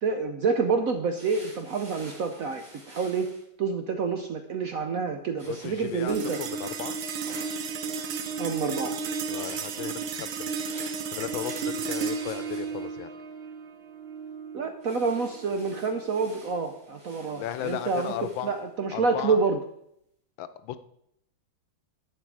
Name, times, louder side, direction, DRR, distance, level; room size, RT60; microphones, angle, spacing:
voice 1, 0.0-3.3 3.6-6.4 8.4-8.9 14.5-19.6, right 4 dB, 65° right, 6 dB, 0.9 m, -28 dB
sound 1, 1.1-3.4 5.4-7.7 9.3-13.0 14.8-18.6, right 1 dB, 45° right, 3.6 m, -50 dB
voice 2, 5.5-7.0 9.3-10.5 11.1-13.1 17.4-18.5 18.9-19.4 20.4-20.8, left 11 dB, 75° left, 13 dB, 1.3 m, -35 dB
sound 2, 6.1-16.7, right 5 dB, 90° right, 1.7 m, -34 dB
11.0 x 7.5 x 4.7 m, 0.75 s
omnidirectional pair, 2.2 m